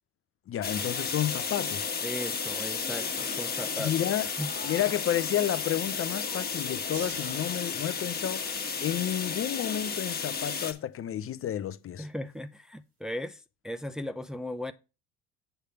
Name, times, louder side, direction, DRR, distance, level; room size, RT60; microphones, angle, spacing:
voice 1, 0.5-1.9 3.8-4.3 4.6-8.4 8.8-12.1, left 11 dB, 45° left, 0.7 m, -31 dB
sound 1, 0.6-10.7, left 5 dB, 30° left, 1.4 m, -33 dB
voice 2, 2.0-4.5 12.0-14.7, left 1 dB, ahead, 0.5 m, -37 dB
sound 2, 6.9-9.4 11.1-11.2, right 3 dB, 80° right, 3.1 m, -47 dB
8.1 x 3.3 x 5.8 m
supercardioid pair, 75°, 31 cm